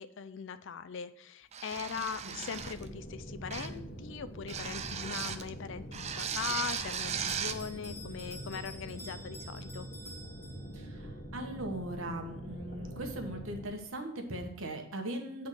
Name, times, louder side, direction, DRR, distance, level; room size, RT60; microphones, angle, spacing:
voice 1, 0.0-9.9, left 6 dB, 65° left, 13 dB, 0.4 m, -40 dB
sound 1, 1.5-2.9 3.5-3.8 4.5-5.5 5.9-7.6, right 7 dB, 35° right, 0.4 m, -37 dB
sound 2, 2.5-13.7, right 1 dB, 40° left, 1.1 m, -44 dB
Bell, 7.3-11.0, equal, 15° left, 1.6 m, -49 dB
voice 2, 10.7-15.5, right 1 dB, 75° right, 4 dB, 1.2 m, -39 dB
8.1 x 3.6 x 6.2 m, 0.69 s
head